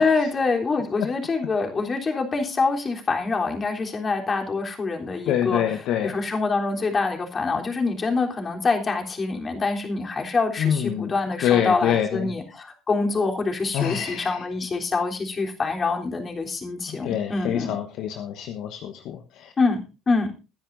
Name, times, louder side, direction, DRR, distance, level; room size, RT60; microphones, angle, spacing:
voice 1, 0.0-5.6 6.0-17.8 19.6-20.3, left 4 dB, 30° left, 2 dB, 3.5 m, -25 dB
voice 2, 5.3-6.1 10.6-11.1 11.4-12.3 13.7-14.4 16.9-19.5, left 10 dB, 60° left, 6 dB, 1.2 m, -25 dB
21.0 x 10.0 x 2.6 m, 0.30 s
hypercardioid pair, 65°, 0 cm